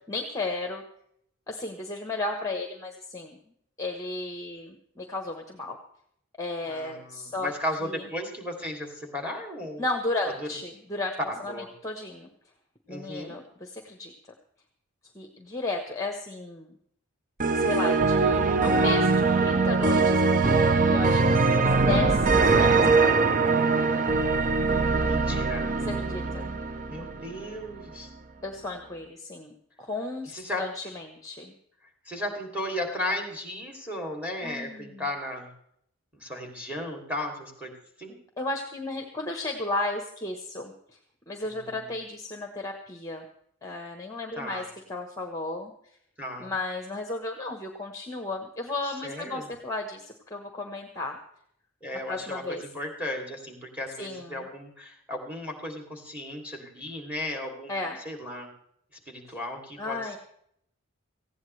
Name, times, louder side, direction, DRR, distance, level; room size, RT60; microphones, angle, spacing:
voice 1, 0.1-0.8 1.5-3.4 3.8-5.8 6.4-7.5 9.8-11.1 11.4-12.3 12.9-14.1 15.1-16.7 17.5-23.2 25.9-26.4 28.4-31.5 34.4-35.0 38.4-40.7 41.3-43.2 43.6-45.7 46.4-51.2 52.1-52.6 54.0-54.5 57.7-58.0 59.8-60.2, left 2 dB, 15° left, 4 dB, 1.1 m, -34 dB
voice 2, 6.7-9.8 10.4-10.5 11.3-11.7 12.9-13.4 21.5-22.1 25.0-25.7 26.9-28.1 30.3-30.6 32.0-35.5 36.1-37.7 38.0-38.2 41.4-41.9 44.4-44.7 46.2-46.5 48.8-49.5 51.8-58.5 59.1-60.2, left 1 dB, 5° right, 2 dB, 2.8 m, -35 dB
sound 1, 17.4-27.5, right 3 dB, 35° right, 0.7 m, -22 dB
18.5 x 15.5 x 3.3 m, 0.71 s
head